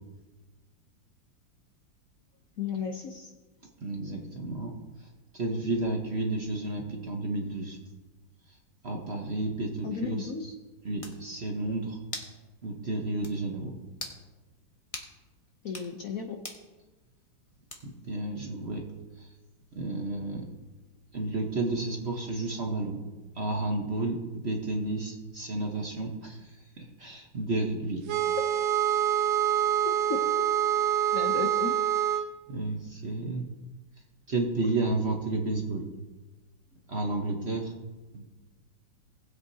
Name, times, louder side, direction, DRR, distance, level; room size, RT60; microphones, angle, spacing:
voice 1, 2.6-3.3 9.8-10.5 15.6-16.4 30.1-30.3 31.1-31.8, left 6 dB, 60° left, 3 dB, 1.0 m, -34 dB
voice 2, 3.8-4.7 5.0-5.1 5.3-7.8 8.5-8.6 8.8-10.3 10.8-12.0 12.6-13.7 17.8-18.8 19.2-19.3 19.7-20.5 21.1-23.0 23.3-28.0 32.5-33.5 34.3-35.9 36.9-37.7 38.1-38.2, right 2 dB, 40° right, 1 dB, 1.0 m, -31 dB
sound 1, 10.6-10.7 11.0-11.2 12.1-12.4 12.7-12.8 13.2-13.4 13.9-14.2 14.9-15.1 15.6-15.9 16.4-16.6 17.7-18.0, left 2 dB, 20° left, 1.0 m, -40 dB
sound 2, 28.1-32.3, right 10 dB, 80° right, 1.5 m, -26 dB
19.0 x 8.1 x 2.7 m, 1.2 s
omnidirectional pair, 2.1 m